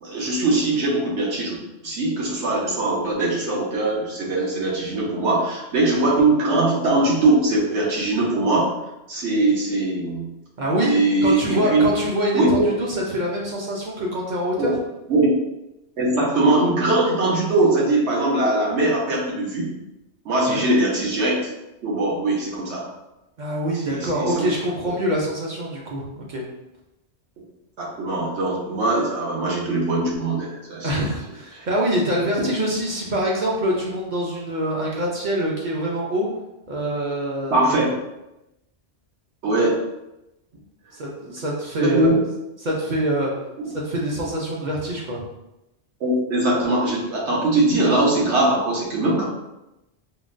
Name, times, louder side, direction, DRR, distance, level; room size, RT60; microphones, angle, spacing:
voice 1, 0.0-1.6 1.8-8.7 9.1-10.3 10.8-11.8 12.3-12.7 14.6-14.7 15.1-15.3 16.0-19.7 20.2-21.5 21.8-22.9 23.7-24.5 24.8-24.9 27.8-31.1 31.5-31.7 37.5-37.9 39.4-39.8 41.3-41.4 41.8-42.2 43.6-43.7 46.0-49.2, right 2 dB, 75° right, -4 dB, 1.1 m, -21 dB
voice 2, 10.6-10.9 11.2-14.7 20.4-20.6 23.4-26.4 30.8-36.3 36.7-37.8 40.9-42.1 42.6-43.3 43.7-45.2, equal, 55° right, -3 dB, 0.6 m, -25 dB
3.7 x 2.1 x 2.5 m, 0.94 s
omnidirectional pair, 1.1 m